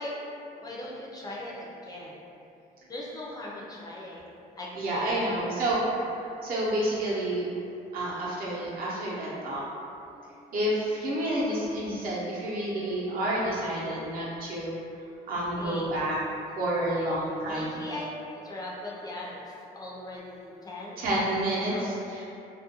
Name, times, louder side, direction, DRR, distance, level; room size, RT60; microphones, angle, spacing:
voice 1, 0.0-2.1 2.9-4.2 4.6-5.2 15.6-16.0 16.8-17.1 17.5-18.1 18.3-19.4 19.7-21.0 21.7-22.0, left 1 dB, 20° left, -5 dB, 0.4 m, -39 dB
voice 2, 4.7-7.5 7.9-9.6 10.5-14.7 15.3-16.2 16.6-17.8 21.0-22.2, right 1 dB, 60° right, -6 dB, 0.7 m, -29 dB
2.3 x 2.1 x 2.8 m, 2.7 s
cardioid pair, 110°, 17 cm